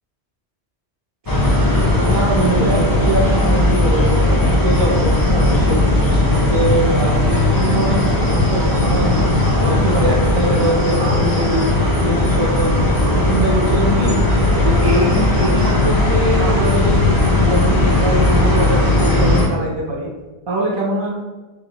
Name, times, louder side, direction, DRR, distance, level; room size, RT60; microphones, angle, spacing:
sound 1, 1.3-19.5, left 2 dB, 30° left, 0.4 m, -16 dB
voice 1, 2.0-5.8 6.3-9.3 9.6-11.7 12.0-14.2 14.5-20.1 20.5-21.1, right 1 dB, 40° right, -3 dB, 0.3 m, -22 dB
3.1 x 3.0 x 2.8 m, 1.2 s
omnidirectional pair, 1.1 m